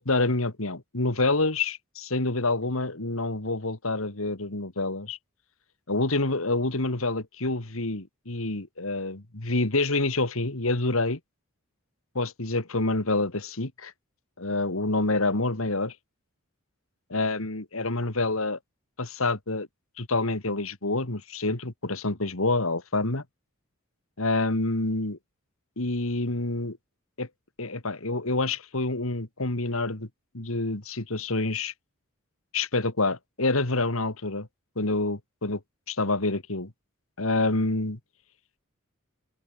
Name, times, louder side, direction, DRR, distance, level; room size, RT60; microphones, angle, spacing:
voice 1, 0.0-5.2 5.9-11.2 12.1-13.9 14.4-16.0 17.1-18.6 19.0-19.7 20.0-23.2 24.2-25.2 25.8-26.8 27.2-27.3 27.6-30.1 30.3-31.7 32.5-34.5 34.8-35.6 35.9-36.7 37.2-38.0, left 2 dB, 70° left, 2.4 m, -27 dB
open air
head